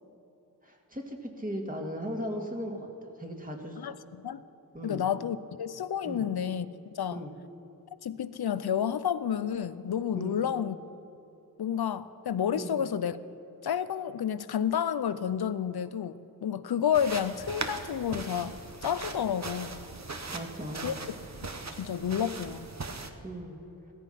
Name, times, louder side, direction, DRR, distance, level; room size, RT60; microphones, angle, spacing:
voice 1, 0.6-2.8 3.2-3.8 4.7-5.1 6.0-6.3 7.1-7.3 10.1-10.4 12.5-12.8 20.3-20.9 23.2-23.6, equal, 20° right, 1 dB, 2.3 m, -37 dB
voice 2, 3.8-4.4 4.8-6.7 7.0-7.2 8.0-10.8 11.6-13.2 13.6-19.9 20.8-21.2 21.8-22.7, left 8 dB, 80° left, 15 dB, 0.6 m, -30 dB
sound 1, 16.9-23.1, right 3 dB, 45° right, 1.1 m, -39 dB
16.5 x 14.0 x 5.8 m, 3.0 s
wide cardioid pair, 60°, 37 cm